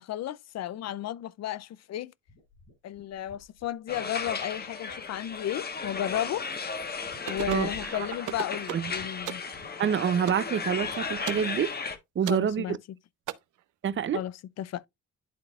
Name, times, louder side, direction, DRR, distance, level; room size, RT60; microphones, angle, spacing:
voice 1, 0.0-2.1 2.8-6.5 7.3-9.4 12.2-12.8 14.1-14.8, left 12 dB, 60° left, 0.5 m, -34 dB
sound 1, 2.3-5.5 5.8-6.4 6.7-8.4 8.9-9.1 9.5-10.0 10.8-11.1, left 1 dB, 80° left, 4.5 m, -56 dB
sound 2, 3.9-12.0, left 5 dB, 30° left, 1.2 m, -35 dB
sound 3, 7.3-7.7 8.3-8.9 9.3-9.5 10.3-10.5 11.3-11.5 12.3-12.5 13.3-13.4, right 14 dB, 80° right, 0.7 m, -35 dB
voice 2, 9.8-11.7 12.2-12.8 13.8-14.2, right 8 dB, 40° right, 0.6 m, -27 dB
11.5 x 3.9 x 2.3 m
cardioid pair, 90°, 30 cm